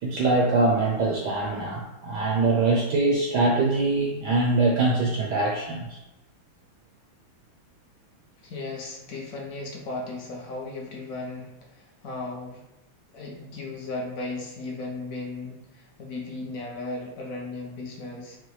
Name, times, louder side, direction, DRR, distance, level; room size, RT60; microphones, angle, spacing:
voice 1, 0.0-6.0, right 3 dB, 75° right, -1 dB, 1.0 m, -23 dB
voice 2, 8.4-12.6 13.1-18.4, left 2 dB, 65° left, -1 dB, 0.8 m, -36 dB
5.8 x 2.2 x 3.1 m, 0.91 s
omnidirectional pair, 2.3 m